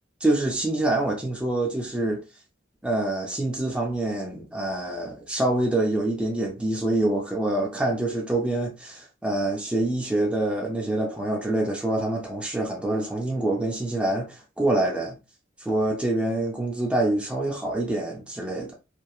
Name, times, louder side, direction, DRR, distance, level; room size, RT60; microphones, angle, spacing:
voice 1, 0.2-2.2 2.8-15.2 15.6-18.7, right 1 dB, 5° right, 0.4 m, -26 dB
2.9 x 2.0 x 2.3 m
head